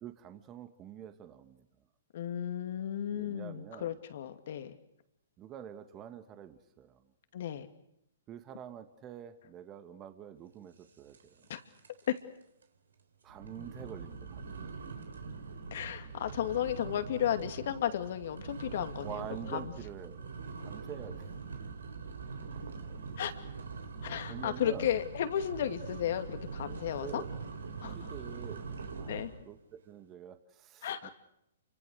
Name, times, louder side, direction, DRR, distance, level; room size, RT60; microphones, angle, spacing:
voice 1, 0.0-1.7 3.1-3.9 5.4-7.0 8.3-11.5 13.2-14.7 19.0-20.2 20.6-21.3 22.5-22.6 22.9-23.0 24.3-24.9 27.0-27.4 27.9-28.6 29.0-31.1, right 9 dB, 25° right, 9 dB, 1.9 m, -47 dB
voice 2, 2.1-4.8 7.3-7.7 11.5-11.6 12.1-12.2 15.7-19.2 19.5-19.7 23.2-23.4 24.0-27.2 27.8-28.0 29.1-29.3 30.8-31.1, left 10 dB, 55° left, 9 dB, 2.5 m, -34 dB
sound 1, 11.1-11.5 11.8-12.2 12.6-12.7 13.3-29.5, right 4 dB, 80° right, 3.7 m, -43 dB
29.5 x 25.0 x 6.6 m, 0.79 s
hypercardioid pair, 130°, 0 cm